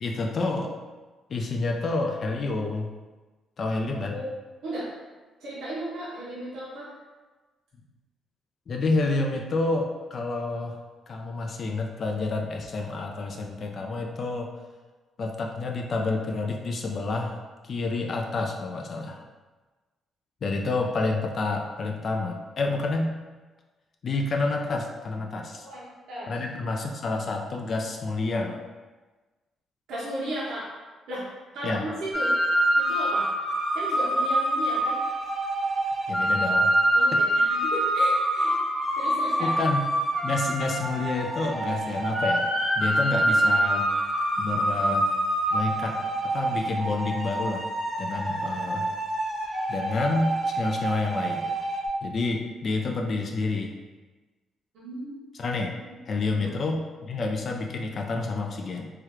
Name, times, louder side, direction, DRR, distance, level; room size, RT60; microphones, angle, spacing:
voice 1, 0.0-0.7 1.3-2.9 3.6-4.2 8.7-10.8 11.1-14.5 15.2-17.3 17.6-19.2 20.4-23.1 24.0-25.7 26.3-28.6 31.6-31.8 36.1-36.7 39.4-39.8 40.2-42.5 42.8-43.9 44.4-45.1 45.5-47.6 48.0-49.0 49.7-51.5 52.0-53.7 55.4-55.7 56.1-58.9, left 3 dB, 50° left, 2 dB, 0.3 m, -29 dB
voice 2, 5.4-6.9 25.6-26.3 29.9-30.7 31.1-31.2 31.5-32.3 32.8-33.3 33.7-35.0 36.9-38.6 39.0-39.5 54.7-55.2 56.4-56.5, right 1 dB, 80° right, -8 dB, 0.7 m, -35 dB
sound 1, 32.1-51.9, right 1 dB, 10° left, 0.9 m, -26 dB
3.2 x 2.3 x 2.9 m, 1.3 s
cardioid pair, 90°, 0 cm